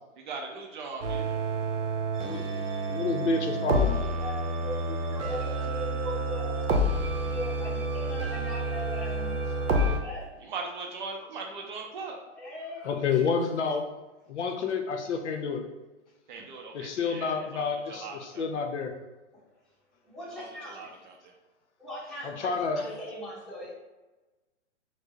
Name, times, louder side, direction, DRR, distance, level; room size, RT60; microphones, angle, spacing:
voice 1, 0.2-1.4 10.5-12.2 16.3-18.5 20.7-21.3, right 4 dB, 40° right, 1 dB, 0.5 m, -40 dB
sound 1, 1.0-10.0, right 1 dB, 70° right, 0.8 m, -29 dB
voice 2, 2.2-4.1 12.8-13.8 14.3-15.6 16.7-18.9 22.2-22.8, left 5 dB, 65° left, 4 dB, 0.6 m, -29 dB
voice 3, 4.2-9.5 9.8-10.5 12.3-13.3 16.4-16.5 19.3-19.4 20.0-20.9 21.8-23.7, left 1 dB, ahead, -8 dB, 0.9 m, -40 dB
4.2 x 2.1 x 2.9 m, 1.1 s
hypercardioid pair, 125°, 38 cm